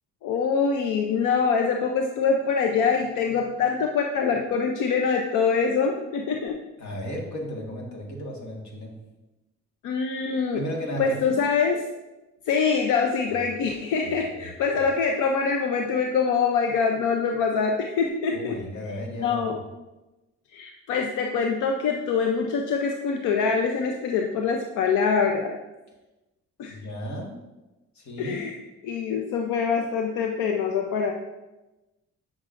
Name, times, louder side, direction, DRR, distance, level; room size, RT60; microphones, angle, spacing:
voice 1, 0.2-6.6 9.8-10.6 11.0-11.8 12.5-18.6 19.2-19.6 20.5-25.6 26.6-26.8 28.2-28.5 28.8-31.1, left 5 dB, 90° left, 3 dB, 0.6 m, -24 dB
voice 2, 6.8-8.9 10.5-11.4 13.3-13.4 14.0-14.8 18.3-19.4 26.7-27.3 28.0-28.4, equal, 65° left, 0 dB, 1.7 m, -35 dB
8.8 x 6.1 x 2.5 m, 1.0 s
cardioid pair, 90°, 30 cm